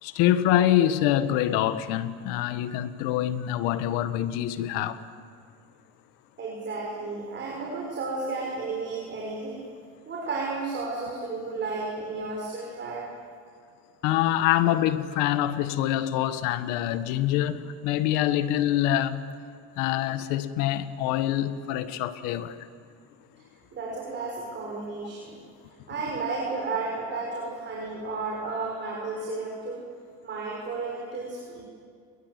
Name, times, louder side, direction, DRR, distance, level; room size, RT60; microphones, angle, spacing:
voice 1, 0.0-5.0 14.0-19.3 19.7-22.6, left 12 dB, 75° left, 1.6 m, -25 dB
voice 2, 6.4-9.7 10.1-13.1 23.7-25.4 25.9-29.9 30.2-31.7, right 3 dB, 35° right, 6.4 m, -33 dB
29.5 x 21.5 x 8.3 m
cardioid pair, 130°, 34 cm